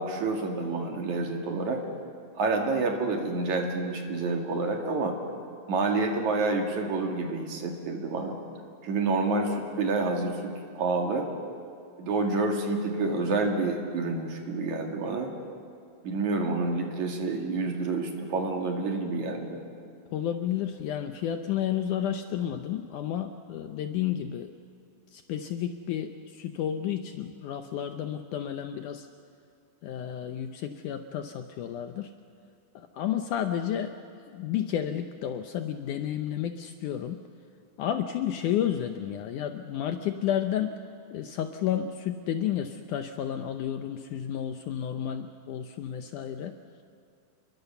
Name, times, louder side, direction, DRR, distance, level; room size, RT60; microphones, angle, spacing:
voice 1, 0.0-1.8 2.3-5.2 5.7-8.4 8.8-11.3 12.0-15.3 16.0-19.6, right 3 dB, 55° right, 2 dB, 3.3 m, -28 dB
voice 2, 20.1-24.5 25.1-29.1 29.8-32.1 32.8-34.0 34.3-37.2 37.8-40.8 41.1-46.6, left 10 dB, 75° left, 7 dB, 2.0 m, -31 dB
29.0 x 22.0 x 7.0 m, 2.4 s
omnidirectional pair, 4.2 m